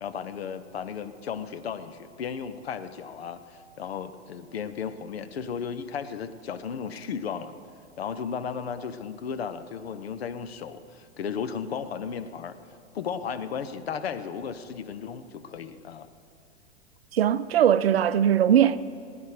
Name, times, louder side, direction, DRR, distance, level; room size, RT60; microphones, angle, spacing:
voice 1, 0.0-7.5 8.0-12.6 12.9-16.1, left 7 dB, 65° left, 1.0 m, -35 dB
voice 2, 17.1-18.8, right 9 dB, 65° right, 0.6 m, -20 dB
19.0 x 9.4 x 5.0 m
figure-of-eight pair, 105°, 33 cm